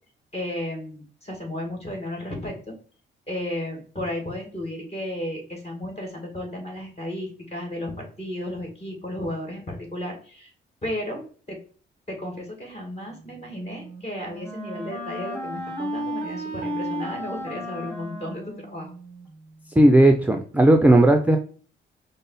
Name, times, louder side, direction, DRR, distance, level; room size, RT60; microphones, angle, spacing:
voice 1, 0.3-2.8 3.3-10.5 10.8-11.6 12.1-18.9, left 1 dB, 30° left, 1 dB, 2.0 m, -33 dB
Wind instrument woodwind instrument, 13.5-19.3, equal, 10° left, 1.8 m, -34 dB
voice 2, 19.8-21.4, right 1 dB, 10° right, 4 dB, 0.4 m, -15 dB
5.2 x 2.0 x 3.9 m, 0.42 s
cardioid pair, 90°, 20 cm